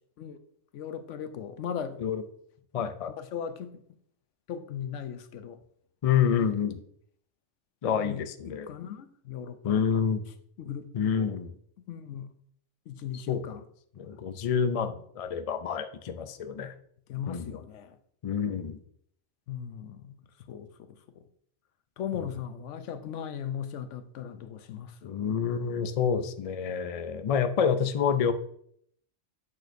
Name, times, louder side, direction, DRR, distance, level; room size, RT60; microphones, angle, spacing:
voice 1, 0.7-2.0 2.8-2.9 3.2-3.8 4.5-5.6 6.3-6.6 7.8-10.1 10.6-11.4 11.8-12.3 12.9-13.6 17.1-18.0 19.5-20.2 20.5-21.2 22.0-25.4, left 8 dB, 75° left, 1.0 m, -38 dB
voice 2, 2.7-3.1 6.0-6.8 7.8-8.7 9.6-10.3 10.9-11.5 13.3-13.5 14.0-16.7 17.3-17.6 18.2-18.8 25.0-28.3, left 7 dB, 60° left, 0.3 m, -28 dB
8.8 x 6.2 x 2.6 m
omnidirectional pair, 1.3 m